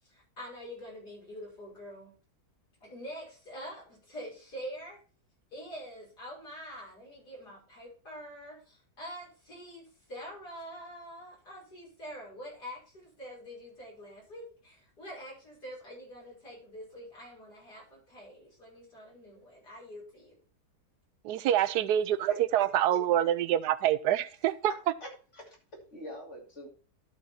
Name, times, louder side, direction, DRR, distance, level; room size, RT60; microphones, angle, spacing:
voice 1, 0.0-2.1 2.8-5.0 5.5-20.4, equal, 70° left, 6.5 m, -45 dB
voice 2, 21.2-24.7, right 11 dB, 75° right, 1.2 m, -26 dB
voice 3, 22.3-23.0 25.0-26.7, equal, 45° left, 3.0 m, -45 dB
12.0 x 5.5 x 4.3 m
omnidirectional pair, 1.8 m